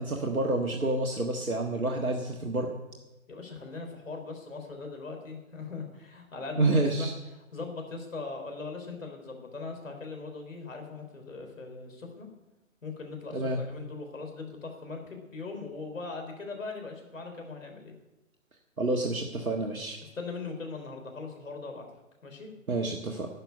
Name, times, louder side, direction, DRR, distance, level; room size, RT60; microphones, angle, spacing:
voice 1, 0.0-2.7 6.6-7.1 13.3-13.6 18.8-20.0 22.7-23.3, right 2 dB, 85° right, 2 dB, 1.7 m, -28 dB
voice 2, 3.3-7.1 7.5-12.3 12.8-18.0 20.0-21.8 22.2-22.5, left 3 dB, 70° left, 4 dB, 3.8 m, -40 dB
12.0 x 6.9 x 9.7 m, 1.0 s
figure-of-eight pair, 135°, 41 cm